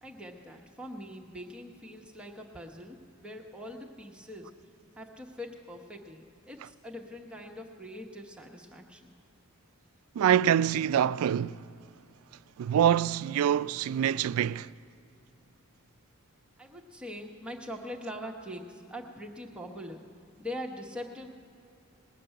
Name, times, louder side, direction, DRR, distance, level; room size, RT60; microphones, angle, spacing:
voice 1, 0.0-4.5 5.0-9.1 16.6-20.1 20.4-21.3, equal, 5° right, 0.8 m, -42 dB
voice 2, 10.2-11.6 12.6-14.7, right 9 dB, 75° right, 0.3 m, -25 dB
19.5 x 6.7 x 8.9 m
head